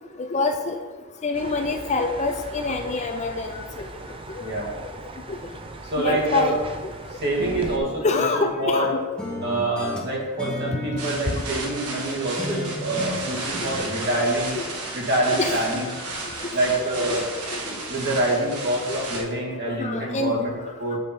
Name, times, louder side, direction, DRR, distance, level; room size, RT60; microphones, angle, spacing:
voice 1, 0.2-0.8 1.2-3.9 5.3-5.4 6.0-6.6 6.8-6.9 8.0-9.0 10.7-10.8 11.3-11.4 12.5-12.6 14.5-14.6 15.3-15.8 16.3-16.4 16.8-17.2 17.5-17.6 18.9-19.0 19.6-20.3, left 3 dB, 30° left, 5 dB, 0.5 m, -26 dB
sound 1, 1.3-7.8, right 2 dB, 25° right, 0.5 m, -38 dB
voice 2, 5.8-6.5 7.1-8.9 9.4-14.6 14.9-16.0 16.5-17.2 17.6-20.5 20.8-21.0, right 1 dB, 50° right, -2 dB, 1.8 m, -26 dB
sound 2, 7.4-8.9 9.2-12.0 12.4-13.8, left 1 dB, 5° left, 1.4 m, -35 dB
sound 3, 11.0-19.2, right 2 dB, 90° right, 1.4 m, -33 dB
7.3 x 6.7 x 4.3 m, 1.4 s
head